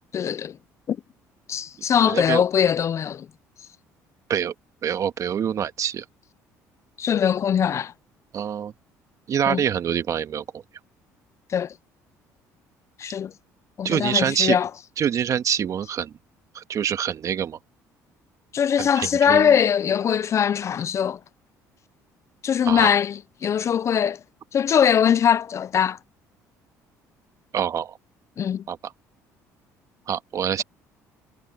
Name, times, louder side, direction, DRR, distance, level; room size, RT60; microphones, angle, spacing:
voice 1, 0.1-0.6 0.9-1.0 1.5-3.3 7.0-7.9 9.5-9.6 11.5-11.7 13.0-13.3 13.8-14.7 18.5-21.2 22.4-24.2 24.5-26.0 28.4-28.6, left 8 dB, 45° left, 0.5 m, -21 dB
voice 2, 2.1-2.4 4.3-4.5 4.8-6.1 8.3-8.7 9.3-10.6 13.8-14.6 15.0-16.1 16.5-17.6 18.8-19.6 22.7-22.9 27.5-28.0 28.7-28.9 30.1-30.6, right 8 dB, 50° right, 1.7 m, -25 dB
supercardioid pair, 80°, 7 cm